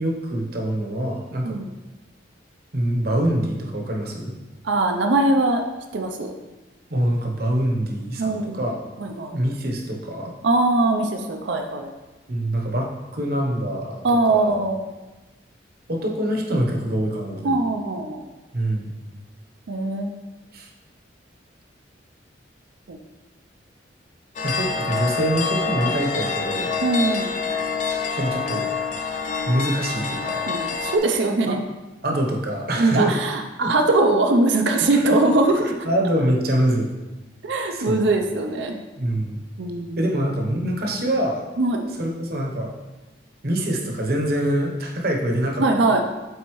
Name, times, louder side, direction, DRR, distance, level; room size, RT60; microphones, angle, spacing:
voice 1, 0.0-1.6 2.7-4.3 6.9-8.7 9.3-10.3 12.3-14.0 14.3-14.5 15.9-17.6 18.5-18.9 20.5-20.7 24.4-26.7 28.2-28.6 29.5-30.4 31.5-31.6 32.0-33.2 33.6-33.7 34.8-35.2 35.6-36.9 37.7-38.0 39.0-39.4 40.0-41.4 42.0-42.7 43.4-45.6, right 1 dB, 55° right, 1 dB, 1.0 m, -24 dB
voice 2, 4.6-5.6 5.9-6.3 8.2-8.7 9.0-9.4 10.4-11.9 14.0-14.9 17.4-18.2 19.7-20.1 22.9-23.0 26.8-27.3 30.5-31.6 32.7-35.7 37.4-38.8 39.6-40.0 41.6-41.9 45.6-46.0, right 2 dB, 75° right, 4 dB, 0.6 m, -21 dB
sound 1, 24.4-31.0, left 5 dB, 40° left, 0.5 m, -26 dB
7.9 x 4.1 x 3.1 m, 1.1 s
head